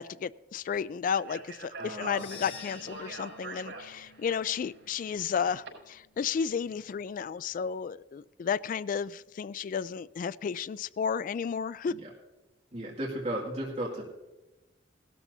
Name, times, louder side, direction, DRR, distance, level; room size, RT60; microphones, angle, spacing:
voice 1, 0.0-12.0, left 6 dB, 50° left, 18 dB, 0.3 m, -33 dB
Speech, 1.1-5.7, right 3 dB, 80° right, 5.2 m, -44 dB
voice 2, 1.7-2.2 11.9-12.1 12.7-14.0, right 1 dB, 40° right, -4 dB, 2.2 m, -35 dB
sound 1, 2.0-6.3, left 7 dB, 70° left, 1.3 m, -51 dB
18.0 x 13.0 x 2.7 m, 1.0 s
head